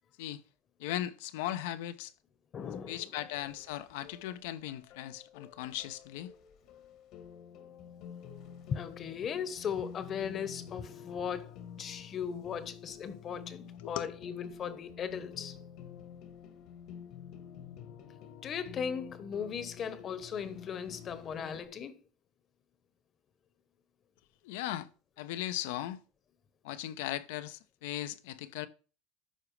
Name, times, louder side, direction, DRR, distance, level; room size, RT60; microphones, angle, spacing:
voice 1, 0.8-2.1 2.9-6.3 13.8-14.1 24.4-24.9 25.2-26.0 26.6-28.7, left 13 dB, 75° left, 0.7 m, -38 dB
voice 2, 2.5-3.1 8.7-15.6 18.4-22.0, left 7 dB, 35° left, 1.0 m, -38 dB
sound 1, 2.7-21.7, left 8 dB, 60° left, 1.3 m, -49 dB
12.5 x 4.8 x 3.2 m
supercardioid pair, 115°, 0 cm